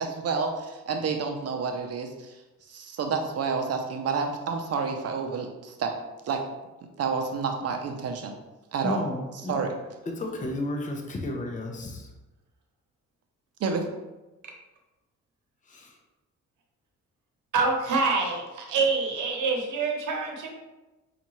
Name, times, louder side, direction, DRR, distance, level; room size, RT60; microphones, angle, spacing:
voice 1, 0.0-2.4 2.7-5.9 6.2-6.4 7.0-8.3 8.7-9.0 9.5-9.7 13.6-13.8, right 5 dB, 55° right, 4 dB, 0.6 m, -29 dB
voice 2, 8.8-9.6 10.1-12.1 15.7-16.0, left 1 dB, 25° left, 2 dB, 0.6 m, -33 dB
voice 3, 17.5-20.5, right 4 dB, 80° right, 2 dB, 0.9 m, -26 dB
5.3 x 2.5 x 3.0 m, 1.1 s
cardioid pair, 90°, 30 cm